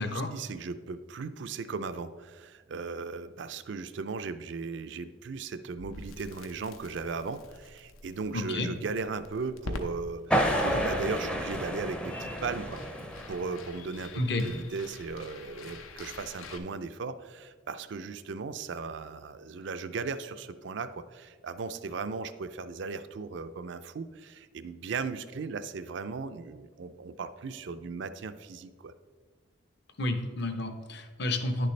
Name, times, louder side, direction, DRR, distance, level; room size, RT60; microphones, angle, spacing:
voice 1, 0.0-12.8 13.3-28.9, right 4 dB, 60° right, 11 dB, 0.4 m, -37 dB
Crackle, 5.8-16.6, left 2 dB, 85° left, 0.8 m, -46 dB
voice 2, 8.3-8.7 14.1-14.5 30.0-31.7, left 2 dB, 55° left, 7 dB, 0.8 m, -30 dB
sound 1, 10.3-13.8, equal, 5° left, 0.5 m, -30 dB
10.0 x 6.7 x 3.2 m, 1.5 s
head